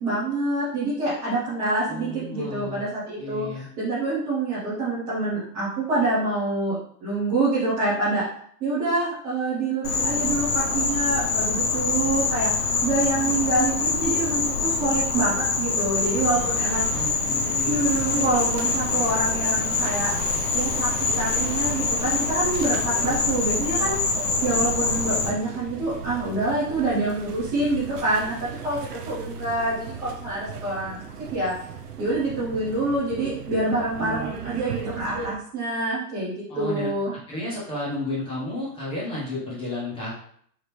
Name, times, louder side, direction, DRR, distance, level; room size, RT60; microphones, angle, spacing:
voice 1, 0.0-6.8 7.0-8.2 8.6-16.9 17.7-20.1 20.5-20.9 21.1-23.9 24.4-31.0 31.3-31.5 32.0-37.1, right 2 dB, 10° right, -12 dB, 0.4 m, -26 dB
voice 2, 1.9-2.8 3.2-3.7 16.2-18.3 34.0-34.3 36.5-40.1, left 1 dB, 10° left, -7 dB, 1.0 m, -33 dB
Insect, 9.8-25.3, left 4 dB, 65° left, 1.0 m, -25 dB
sound 1, 16.0-35.4, right 6 dB, 70° right, 0.8 m, -37 dB
3.9 x 3.5 x 3.2 m, 0.63 s
hypercardioid pair, 150°, 48 cm